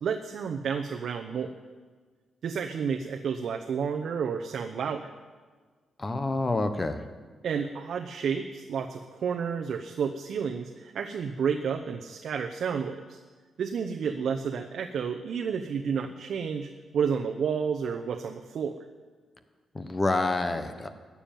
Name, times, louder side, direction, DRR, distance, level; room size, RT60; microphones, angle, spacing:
voice 1, 0.0-1.5 2.4-5.1 7.4-13.2 13.6-18.8, right 6 dB, 60° right, 4 dB, 0.8 m, -31 dB
voice 2, 6.0-7.0 19.7-20.9, left 2 dB, 20° left, 9 dB, 1.0 m, -28 dB
14.5 x 7.2 x 9.2 m, 1.5 s
wide cardioid pair, 150°, 0 cm